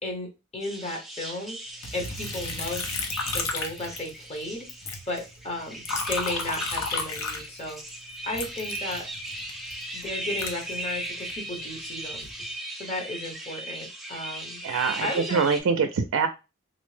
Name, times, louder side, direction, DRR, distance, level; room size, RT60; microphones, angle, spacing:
voice 1, 0.0-1.6 1.9-2.9 3.3-4.7 5.1-7.8 8.2-9.1 9.9-12.3 12.8-14.6 15.0-15.4, left 1 dB, 30° left, 1 dB, 0.8 m, -34 dB
sound 1, 0.6-15.6, right 1 dB, ahead, 0.4 m, -37 dB
Liquid, 1.8-4.4 4.7-7.9 8.3-11.4 11.9-12.5, left 4 dB, 85° left, 0.7 m, -33 dB
voice 2, 14.6-16.3, right 5 dB, 90° right, 7 dB, 0.4 m, -24 dB
3.9 x 2.1 x 3.1 m, 0.27 s
head